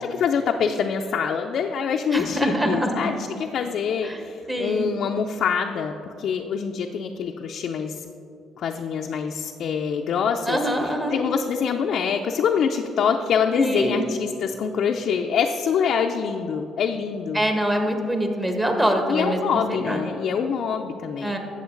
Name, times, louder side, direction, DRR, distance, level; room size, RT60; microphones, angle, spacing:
voice 1, 0.0-8.0 8.6-17.5 19.1-21.4, left 6 dB, 65° left, 2 dB, 0.5 m, -25 dB
voice 2, 2.1-3.1 4.0-4.2 4.5-4.9 10.5-11.2 13.5-14.1 17.3-20.0 21.2-21.4, equal, 15° right, 3 dB, 1.5 m, -24 dB
12.5 x 7.7 x 3.9 m, 2.7 s
cardioid pair, 80°, 0 cm